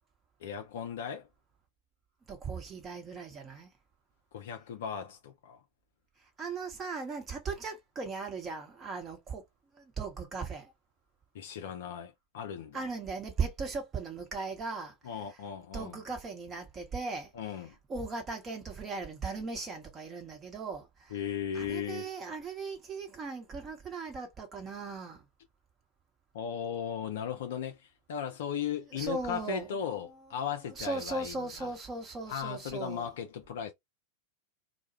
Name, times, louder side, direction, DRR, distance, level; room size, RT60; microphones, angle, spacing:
voice 1, 0.4-1.3 4.3-5.6 11.3-12.9 15.0-16.0 17.3-17.7 21.1-22.1 26.3-31.7 32.3-33.7, left 8 dB, 55° left, 0.4 m, -37 dB
voice 2, 2.3-3.7 6.4-9.4 9.8-10.7 12.7-15.1 15.7-17.3 17.9-21.2 21.5-25.2 28.9-29.8 30.7-33.1, right 4 dB, 25° right, 1.0 m, -38 dB
2.3 x 2.1 x 2.9 m
figure-of-eight pair, 90°, 0 cm